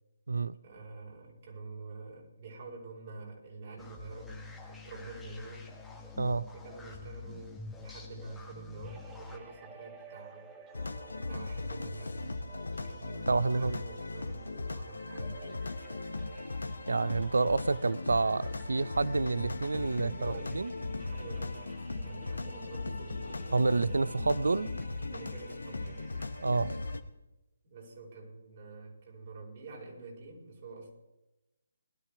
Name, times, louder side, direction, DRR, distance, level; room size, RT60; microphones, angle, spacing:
voice 1, 0.6-6.1 6.5-10.5 11.3-12.4 12.8-15.6 20.0-24.0 25.1-26.0 27.6-30.9, right 3 dB, 45° right, -2 dB, 5.1 m, -47 dB
sound 1, 3.8-9.4, left 4 dB, 5° left, 1.6 m, -46 dB
voice 2, 6.2-6.5 13.3-13.8 16.9-20.7 23.5-24.7 26.4-26.7, right 3 dB, 70° right, 18 dB, 0.5 m, -28 dB
sound 2, 8.8-27.0, right 6 dB, 15° right, 1.3 m, -55 dB
sound 3, 10.7-27.0, left 3 dB, 75° left, 1.0 m, -38 dB
20.5 x 12.5 x 3.6 m, 0.98 s
figure-of-eight pair, 140°, 0 cm